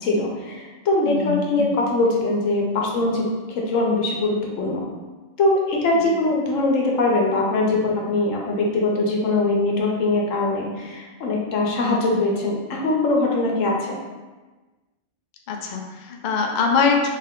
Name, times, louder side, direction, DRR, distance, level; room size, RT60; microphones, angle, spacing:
voice 1, 0.0-4.8 5.4-14.0, left 2 dB, 85° left, -1 dB, 1.2 m, -22 dB
voice 2, 1.0-1.7 6.0-6.1 12.2-12.3 15.5-17.1, left 5 dB, 55° left, 1 dB, 0.6 m, -23 dB
3.3 x 3.3 x 3.7 m, 1.2 s
omnidirectional pair, 1.3 m